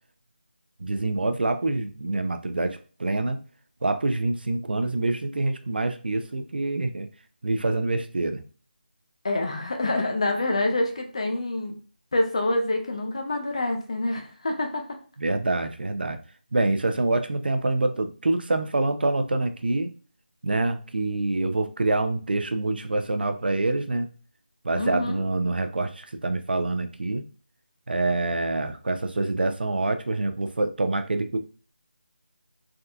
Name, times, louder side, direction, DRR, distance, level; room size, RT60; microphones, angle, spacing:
voice 1, 0.8-3.4 3.8-7.1 7.4-8.4 15.2-16.2 16.5-19.9 20.4-24.1 24.6-27.2 27.9-31.4, right 2 dB, 65° right, 8 dB, 0.5 m, -26 dB
voice 2, 9.2-11.8 12.1-14.8 24.8-25.2, left 2 dB, 35° left, 3 dB, 0.5 m, -26 dB
3.5 x 2.7 x 2.2 m, 0.38 s
figure-of-eight pair, 175°, 6 cm